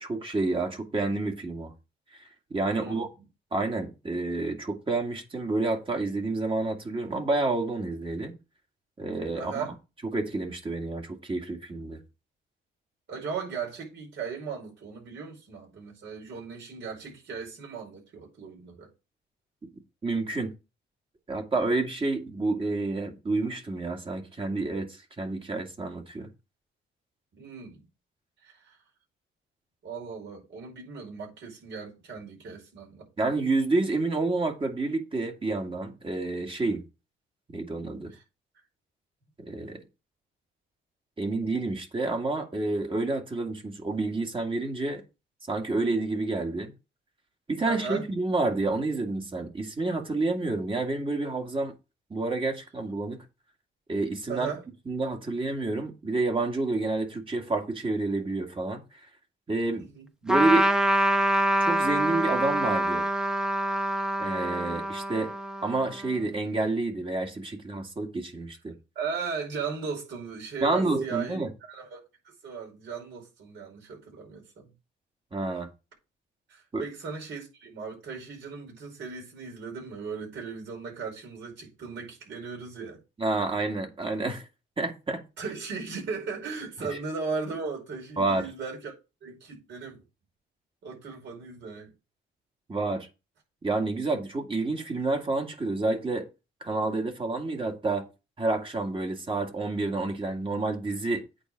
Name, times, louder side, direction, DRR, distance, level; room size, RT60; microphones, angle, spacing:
voice 1, 0.0-1.7 2.1-2.2 2.5-3.1 3.5-8.3 9.0-9.7 10.1-12.0 20.0-20.5 21.3-26.3 33.2-36.8 37.5-38.1 39.4-39.8 41.2-45.0 45.5-46.7 47.5-51.7 52.1-53.2 53.9-54.5 54.9-59.1 59.5-59.9 60.2-60.7 61.6-63.1 64.2-65.3 65.6-68.7 70.6-71.5 75.3-75.7 76.7-76.9 83.2-84.5 84.8-85.2 86.8-86.9 88.2-88.5 92.7-93.1 93.6-96.3 96.6-98.1 98.4-101.2, right 3 dB, 25° right, 2.2 m, -29 dB
voice 2, 2.7-3.1 9.3-9.7 13.1-18.9 27.4-27.8 28.4-28.8 29.8-33.3 38.1-38.2 47.7-48.0 54.3-54.6 59.7-60.1 68.9-71.4 71.7-72.0 72.4-74.7 76.5-83.0 85.4-88.9 89.2-90.0 90.8-91.9, right 5 dB, 65° right, 5.0 m, -37 dB
Trumpet, 60.3-66.2, right 1 dB, 5° right, 0.9 m, -26 dB
8.8 x 4.1 x 6.4 m
cardioid pair, 90°, 20 cm